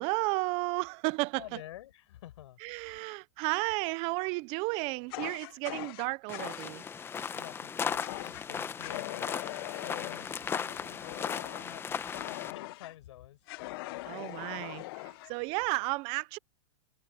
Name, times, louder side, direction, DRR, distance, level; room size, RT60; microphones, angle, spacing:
voice 1, 0.0-1.4 2.6-6.8 14.0-16.4, right 25 dB, 35° right, 0.6 m, -33 dB
voice 2, 1.3-2.9 5.4-5.6 7.3-9.3 9.8-12.0 12.3-13.4, left 14 dB, 65° left, 5.1 m, -49 dB
Fire, 5.1-6.7 8.0-8.5 8.8-12.9 13.5-15.3, left 20 dB, 50° left, 1.0 m, -42 dB
sound 1, 6.3-12.5, left 6 dB, 15° left, 1.1 m, -37 dB
hypercardioid pair, 140°, 16 cm